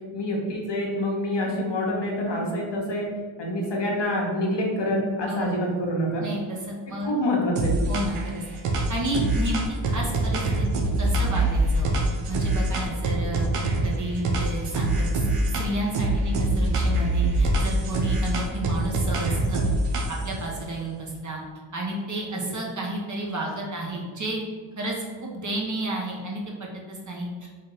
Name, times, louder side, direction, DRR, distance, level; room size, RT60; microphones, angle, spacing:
voice 1, 0.1-3.1 3.4-6.2 7.0-7.7 22.3-22.4, left 1 dB, 55° left, -1 dB, 1.1 m, -26 dB
voice 2, 5.3-5.7 6.2-7.1 7.9-8.4 8.9-10.7 11.0-11.9 12.3-13.5 13.8-21.4 21.7-24.4 24.8-25.0 25.2-27.5, right 1 dB, 35° right, -2 dB, 1.0 m, -31 dB
sound 1, 7.6-8.3 8.6-13.9 14.2-15.7 15.9-20.4, right 2 dB, 85° right, 0.7 m, -24 dB
3.8 x 2.6 x 3.9 m, 1.5 s
cardioid pair, 55°, 50 cm